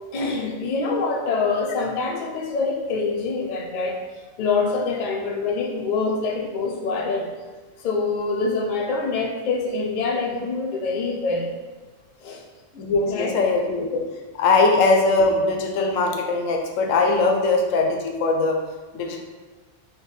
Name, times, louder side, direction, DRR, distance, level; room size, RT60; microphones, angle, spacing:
voice 1, 0.1-4.0 4.4-7.3 7.8-11.5 12.2-12.4 13.1-13.4, left 4 dB, 55° left, 0 dB, 0.5 m, -25 dB
voice 2, 12.7-14.0 14.3-18.6 18.9-19.2, left 3 dB, 85° left, 2 dB, 1.0 m, -20 dB
3.5 x 2.2 x 3.9 m, 1.3 s
omnidirectional pair, 1.3 m